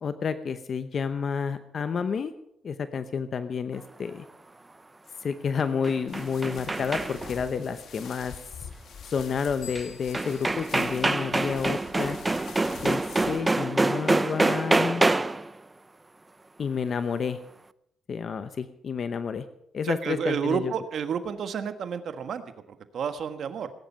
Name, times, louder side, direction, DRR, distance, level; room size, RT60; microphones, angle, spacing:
voice 1, 0.0-2.3 2.6-4.3 5.2-8.3 8.6-8.7 9.0-12.2 12.8-15.0 16.6-17.4 18.1-19.5 19.7-20.7, left 6 dB, 50° left, 11 dB, 0.8 m, -30 dB
sound 1, 5.6-7.4 9.7-9.8 10.1-15.5, right 2 dB, 20° right, 0.5 m, -26 dB
sound 2, 6.1-13.4, left 7 dB, 65° left, 2.0 m, -46 dB
sound 3, 9.6-12.1, left 13 dB, 85° left, 1.0 m, -50 dB
voice 2, 19.8-23.7, right 7 dB, 60° right, 9 dB, 1.4 m, -31 dB
18.5 x 10.5 x 5.7 m, 0.78 s
cardioid pair, 90°, 0 cm